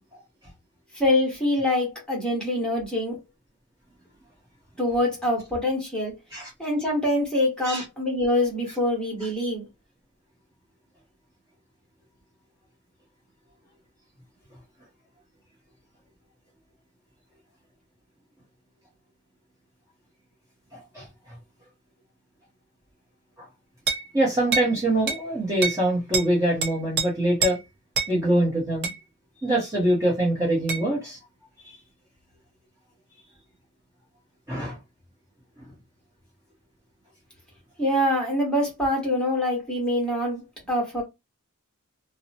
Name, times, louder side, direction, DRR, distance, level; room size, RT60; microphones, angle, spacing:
voice 1, 0.9-3.2 4.8-6.1 6.6-9.7 37.8-41.0, left 1 dB, 5° left, 1.1 m, -25 dB
voice 2, 20.7-21.1 23.4-23.5 24.1-27.6 28.1-28.9 29.4-31.2 31.6-31.8 34.5-34.8, right 1 dB, 15° right, 0.9 m, -24 dB
sound 1, 23.9-24.1 24.5-24.7 25.1-25.2 25.6-25.8 26.1-26.3 26.6-27.1 27.4-27.6 28.0-28.1 28.8-29.0 30.7-30.9, right 5 dB, 45° right, 0.5 m, -26 dB
2.8 x 2.0 x 2.7 m
head